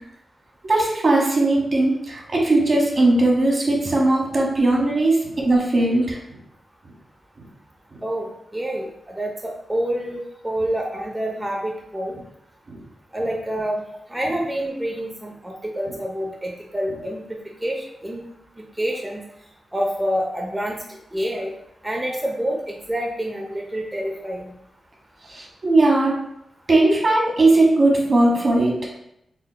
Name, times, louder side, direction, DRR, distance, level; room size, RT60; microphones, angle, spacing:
voice 1, 0.6-6.2 7.9-8.0 12.7-12.8 25.3-26.2 26.7-28.8, right 2 dB, 50° right, -2 dB, 1.2 m, -18 dB
voice 2, 8.0-12.1 13.1-13.8 14.1-17.2 17.6-18.2 18.8-19.2 19.7-20.8 21.1-21.5 21.8-24.5, equal, 15° right, -1 dB, 0.7 m, -27 dB
4.4 x 3.8 x 2.2 m, 0.79 s
cardioid pair, 80°, 0 cm